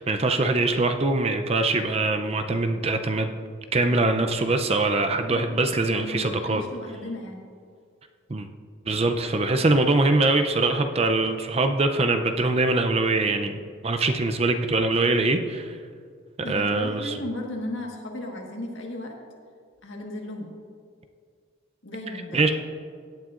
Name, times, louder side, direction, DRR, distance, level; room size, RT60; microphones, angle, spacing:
voice 1, 0.0-3.4 3.7-6.6 8.3-8.5 8.9-15.8 16.5-17.2 22.3-22.5, right 2 dB, 30° right, 6 dB, 0.5 m, -23 dB
voice 2, 5.8-7.4 16.4-19.1 19.8-20.5 21.8-22.5, left 1 dB, 65° left, 0 dB, 1.5 m, -35 dB
16.5 x 8.9 x 2.5 m, 2.1 s
head